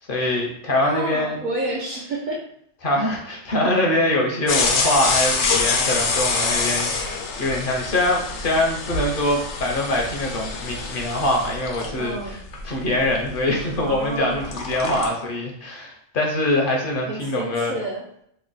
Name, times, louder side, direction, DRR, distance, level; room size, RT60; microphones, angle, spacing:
voice 1, 0.1-1.4 2.8-12.4 12.6-17.8, left 1 dB, 55° left, 0 dB, 0.7 m, -23 dB
voice 2, 0.8-2.4 12.0-12.4 13.8-14.5 17.1-18.0, right 2 dB, 55° right, -2 dB, 0.6 m, -29 dB
sound 1, 4.5-14.1 14.3-15.1, left 4 dB, 80° left, 0.9 m, -26 dB
3.0 x 2.0 x 3.8 m, 0.72 s
omnidirectional pair, 1.2 m